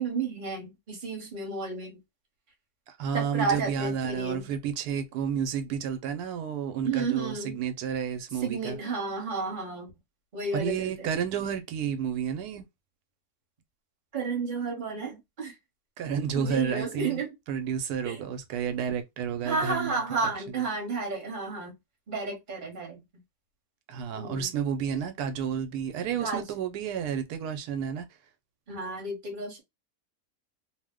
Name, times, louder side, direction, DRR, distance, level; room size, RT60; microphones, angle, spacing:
voice 1, 0.0-2.0 3.1-4.5 6.8-7.6 8.4-9.9 10.3-10.9 14.1-15.5 16.3-17.3 18.0-18.2 19.4-21.7 22.1-23.0 24.1-24.5 26.2-26.4 28.7-29.6, right 4 dB, 35° right, 1.0 m, -32 dB
voice 2, 2.9-8.8 10.5-12.7 16.0-20.7 23.9-28.1, right 7 dB, 85° right, 1.1 m, -31 dB
2.7 x 2.1 x 3.4 m
omnidirectional pair, 1.7 m